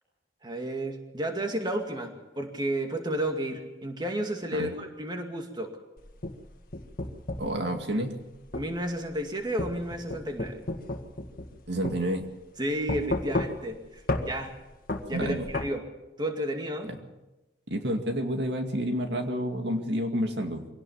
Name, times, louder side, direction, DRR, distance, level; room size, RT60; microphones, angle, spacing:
voice 1, 0.4-5.8 8.5-10.6 12.6-14.5 15.1-15.8 16.2-16.9, right 1 dB, 25° right, 4 dB, 2.2 m, -32 dB
sound 1, 6.0-7.6 8.5-8.7 9.6-11.6 11.8-12.0 12.9-13.8 14.1-14.3 14.9-15.7, left 2 dB, 50° left, 1.9 m, -31 dB
voice 2, 7.4-8.2 11.7-12.3 15.1-15.5 16.9-17.0 17.7-20.7, equal, 65° right, 5 dB, 2.3 m, -29 dB
24.0 x 17.5 x 7.2 m, 1.0 s
head